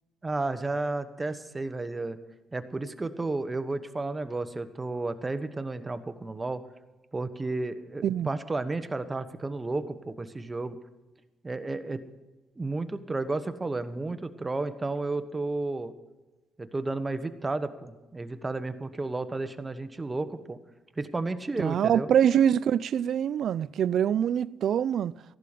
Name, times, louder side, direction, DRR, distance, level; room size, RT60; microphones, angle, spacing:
voice 1, 0.2-2.2 2.5-6.6 7.1-10.8 11.4-12.0 12.6-15.9 16.6-20.6 21.0-22.1, right 2 dB, 20° right, 1.2 m, -32 dB
voice 2, 21.6-25.1, right 9 dB, 65° right, 0.4 m, -24 dB
15.0 x 11.5 x 5.1 m
cardioid pair, 90°, 0 cm